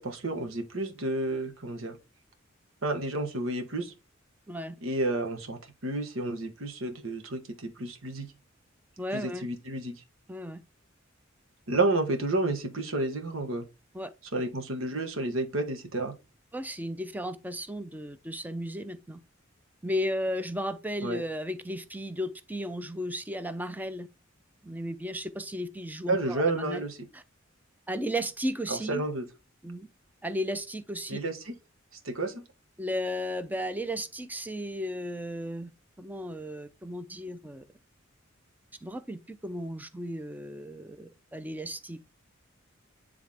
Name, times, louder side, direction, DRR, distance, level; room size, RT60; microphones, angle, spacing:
voice 1, 0.0-2.0 2.8-3.9 4.8-8.3 9.1-9.9 11.7-13.6 14.3-16.1 21.0-21.2 26.1-27.0 28.7-29.2 31.1-31.3 32.0-32.4, right 2 dB, 80° right, 1.4 m, -30 dB
voice 2, 9.0-9.5 10.3-10.6 13.9-14.1 16.5-19.2 19.8-24.1 24.6-26.8 27.1-27.2 27.9-29.0 29.6-29.9 30.2-31.2 32.8-35.7 36.0-37.6 38.8-42.0, equal, 10° right, 0.6 m, -34 dB
9.7 x 3.5 x 3.6 m
head